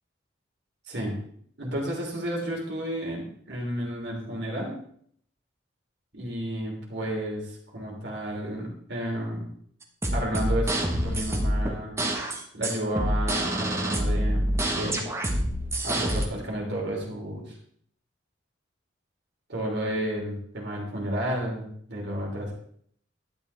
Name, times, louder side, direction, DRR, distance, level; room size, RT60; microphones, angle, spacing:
voice 1, 1.6-4.8 6.1-9.5 10.1-11.9 12.5-14.4 14.7-15.0 15.8-17.6 19.5-22.5, right 1 dB, 60° right, -1 dB, 3.3 m, -32 dB
sound 1, 9.8-16.3, right 1 dB, 15° right, 1.3 m, -26 dB
12.0 x 9.9 x 3.4 m, 0.64 s
head